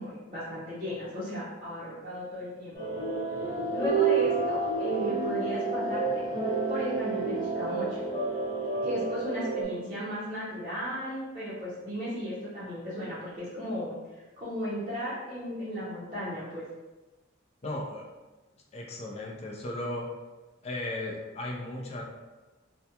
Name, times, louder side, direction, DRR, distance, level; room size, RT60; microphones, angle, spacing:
voice 1, 0.0-2.8 3.7-8.0 8.8-14.0 14.4-16.6, equal, 30° right, -13 dB, 0.7 m, -35 dB
sound 1, 2.7-9.6, right 4 dB, 55° left, 1.0 m, -29 dB
voice 2, 17.6-18.0 18.7-20.1 20.6-22.0, left 1 dB, 35° left, -1 dB, 0.4 m, -35 dB
2.3 x 2.1 x 2.8 m, 1.2 s
head